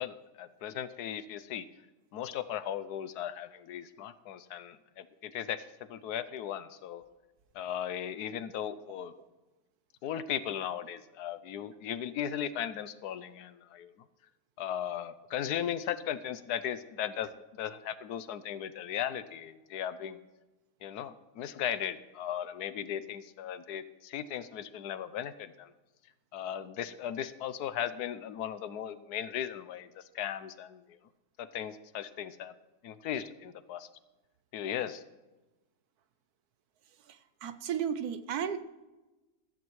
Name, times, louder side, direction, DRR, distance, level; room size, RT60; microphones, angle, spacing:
voice 1, 0.0-1.6 2.1-7.0 7.5-9.1 10.0-13.9 14.6-20.2 20.8-25.7 26.3-31.0 31.4-32.5 32.8-33.9 34.5-35.0, left 10 dB, 85° left, 14 dB, 1.2 m, -37 dB
voice 2, 37.4-38.6, right 8 dB, 75° right, 11 dB, 1.3 m, -33 dB
15.0 x 13.0 x 3.2 m, 1.1 s
omnidirectional pair, 1.7 m